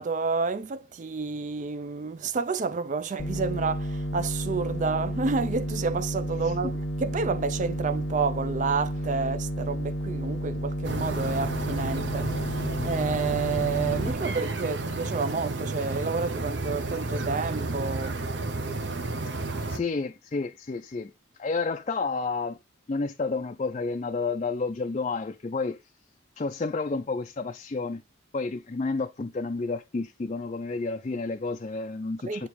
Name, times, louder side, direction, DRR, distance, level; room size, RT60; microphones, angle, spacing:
voice 1, 0.0-18.2 32.2-32.5, right 4 dB, 35° right, 0.4 m, -30 dB
sound 1, 3.2-14.1, equal, 65° left, 0.8 m, -31 dB
sound 2, 10.8-19.8, right 2 dB, 60° right, 0.9 m, -32 dB
voice 2, 19.7-21.1 21.4-22.6 22.9-25.8 26.4-28.0 28.3-32.5, left 3 dB, 35° left, 0.4 m, -30 dB
8.5 x 3.0 x 4.5 m
head